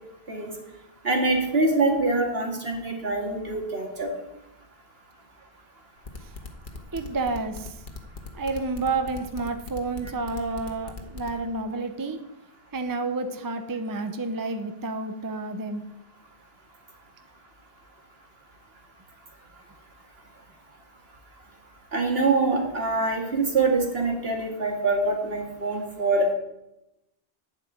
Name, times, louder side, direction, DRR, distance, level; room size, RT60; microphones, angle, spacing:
voice 1, 1.0-4.1 21.9-26.3, right 3 dB, 75° right, 1 dB, 2.3 m, -24 dB
sound 1, 6.0-11.3, left 4 dB, 55° left, 1.5 m, -39 dB
voice 2, 6.9-7.8 8.3-12.2 12.7-15.8, right 3 dB, 20° right, 7 dB, 0.7 m, -30 dB
11.5 x 5.3 x 8.7 m, 0.91 s
omnidirectional pair, 1.0 m